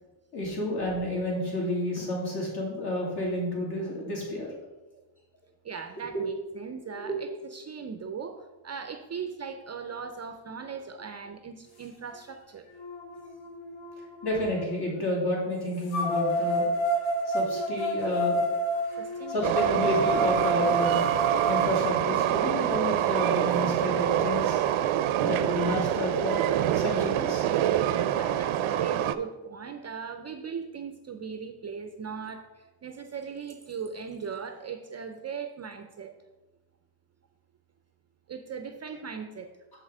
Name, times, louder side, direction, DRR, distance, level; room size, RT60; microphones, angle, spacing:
voice 1, 0.3-4.5 6.1-6.3 7.0-7.2 14.2-16.7 17.3-18.4 19.3-21.0 21.5-24.6 25.2-26.4 26.7-27.5 27.9-28.1, left 1 dB, 55° left, -3 dB, 2.6 m, -30 dB
voice 2, 5.6-8.4 8.6-12.6 18.9-19.8 28.1-36.1 38.3-39.5, right 6 dB, 35° right, 6 dB, 0.4 m, -39 dB
sound 1, 12.1-12.2 12.8-14.7 15.9-21.9, right 1 dB, 70° left, 1.9 m, -29 dB
Train, 19.4-29.2, right 11 dB, 85° right, 0.5 m, -26 dB
7.0 x 5.4 x 4.8 m, 1.1 s
wide cardioid pair, 155°, 47 cm